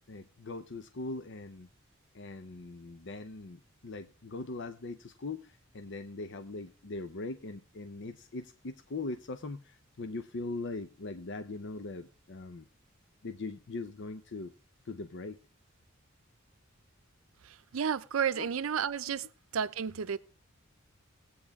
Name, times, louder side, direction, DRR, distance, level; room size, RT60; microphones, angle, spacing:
voice 1, 0.1-1.7 2.1-12.6 13.2-14.5 14.8-15.4 18.4-18.5 19.1-19.2, left 3 dB, 60° left, 0.7 m, -41 dB
voice 2, 17.7-19.2 19.5-20.2, right 7 dB, 85° right, 0.5 m, -31 dB
18.5 x 8.6 x 3.5 m
head